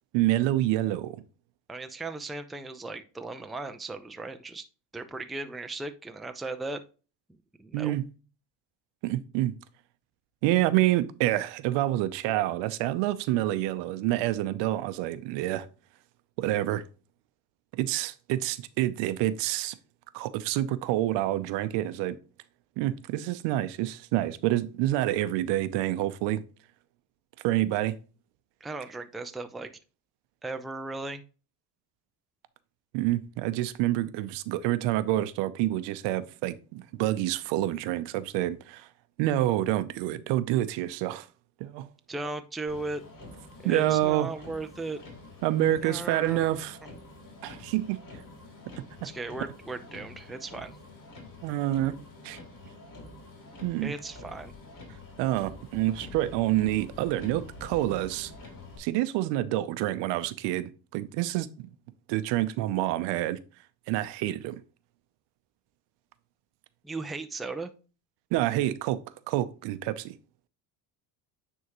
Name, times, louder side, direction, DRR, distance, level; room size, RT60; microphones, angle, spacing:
voice 1, 0.1-1.2 7.7-8.0 9.0-9.5 10.4-15.7 16.4-16.8 17.8-19.7 20.1-22.2 22.8-26.4 27.4-27.9 32.9-38.9 39.2-41.3 41.6-41.9 43.6-44.3 45.4-46.8 47.4-48.0 51.4-52.0 52.2-52.4 53.6-53.9 55.2-58.3 58.8-61.7 62.1-63.4 63.9-64.6 68.3-69.0 69.3-70.1, right 14 dB, 75° right, 0.7 m, -27 dB
voice 2, 1.7-4.6 4.9-6.8 7.6-8.0 28.6-29.7 30.4-31.2 42.1-43.0 43.6-45.0 45.7-46.6 49.0-50.8 53.8-54.5 66.8-67.7, right 3 dB, ahead, 0.4 m, -37 dB
Motor vehicle (road), 42.7-58.8, left 2 dB, 50° left, 3.0 m, -47 dB
9.4 x 3.6 x 3.0 m
cardioid pair, 115°, 43 cm